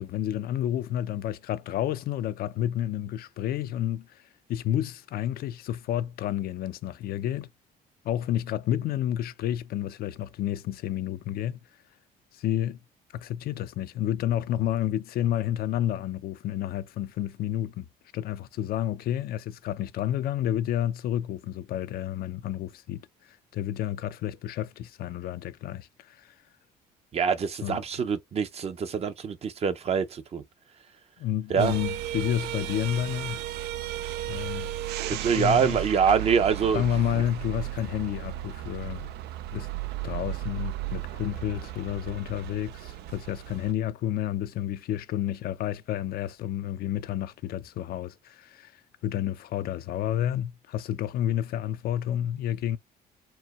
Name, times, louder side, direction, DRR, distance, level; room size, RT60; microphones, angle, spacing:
voice 1, 0.0-4.2 4.5-7.5 8.0-11.6 12.3-12.8 13.1-17.9 18.1-26.4 27.6-27.8 31.2-33.4 34.3-34.7 35.1-35.8 36.7-39.1 39.5-39.7 40.0-52.8, left 11 dB, 65° left, 0.5 m, -30 dB
voice 2, 27.1-30.4 31.5-31.7 35.1-36.9, right 7 dB, 35° right, 0.7 m, -25 dB
sound 1, 31.6-43.7, right 14 dB, 75° right, 0.5 m, -35 dB
4.4 x 2.2 x 4.1 m
cardioid pair, 110°, 17 cm